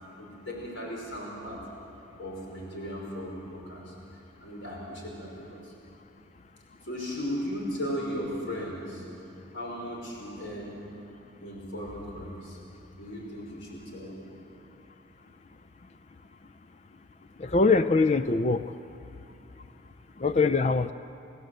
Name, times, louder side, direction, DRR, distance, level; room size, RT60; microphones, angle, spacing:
voice 1, 0.2-1.6 2.2-3.9 4.4-5.7 6.8-9.0 9.5-10.8 11.4-12.6 13.0-14.3, equal, 75° left, -2 dB, 5.3 m, -36 dB
voice 2, 17.4-18.6 20.2-20.9, left 3 dB, 35° left, 10 dB, 0.4 m, -23 dB
29.5 x 16.5 x 8.0 m, 2.8 s
head